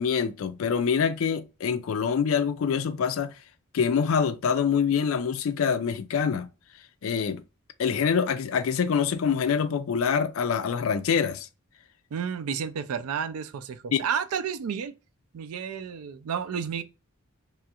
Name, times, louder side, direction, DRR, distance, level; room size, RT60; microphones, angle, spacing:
voice 1, 0.0-3.3 3.7-6.5 7.0-7.4 7.8-11.5 13.9-14.0, left 6 dB, 70° left, 0.4 m, -25 dB
voice 2, 12.1-14.9 15.3-16.8, right 7 dB, 90° right, 0.4 m, -31 dB
3.0 x 2.4 x 2.8 m
head